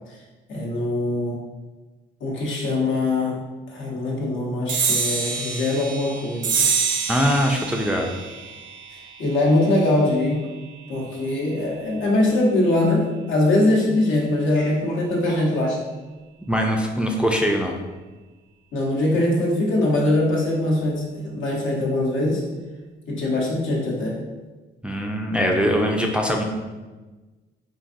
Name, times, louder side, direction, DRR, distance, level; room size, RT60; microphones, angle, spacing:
voice 1, 0.5-1.4 2.2-3.4 3.7-6.6 9.2-10.5 10.9-15.8 18.7-22.4 23.1-24.2, left 1 dB, 75° left, -3 dB, 0.9 m, -22 dB
sound 1, 4.7-11.5, right 5 dB, 70° right, 0.6 m, -28 dB
voice 2, 7.1-8.1 16.5-17.8 24.8-26.4, equal, 5° right, 1 dB, 0.4 m, -22 dB
3.9 x 2.6 x 2.5 m, 1.2 s
cardioid pair, 90°, 20 cm